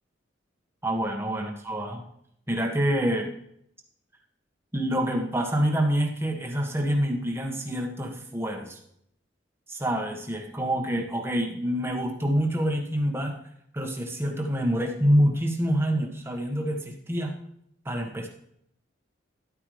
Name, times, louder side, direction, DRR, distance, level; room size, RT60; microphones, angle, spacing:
voice 1, 0.8-2.0 2.5-3.3 4.7-8.8 9.7-13.4 13.7-17.4 17.8-18.3, equal, 15° right, 2 dB, 1.4 m, -26 dB
13.0 x 11.0 x 3.2 m, 0.71 s
head